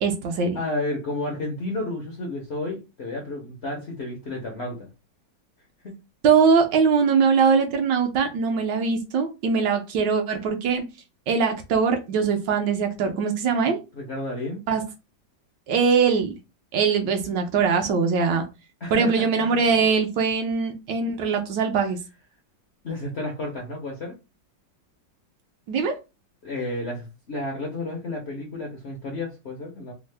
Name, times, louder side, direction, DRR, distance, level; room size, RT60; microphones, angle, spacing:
voice 1, 0.0-0.6 6.2-10.8 11.3-13.8 14.7-14.8 15.7-16.3 16.7-18.4 18.9-22.0 25.7-26.0, right 5 dB, 75° right, 1.3 m, -22 dB
voice 2, 0.5-4.9 5.8-6.0 13.9-14.7 18.8-19.3 22.8-24.2 26.4-29.9, left 2 dB, 60° left, 0.6 m, -31 dB
3.5 x 2.0 x 3.2 m
omnidirectional pair, 2.0 m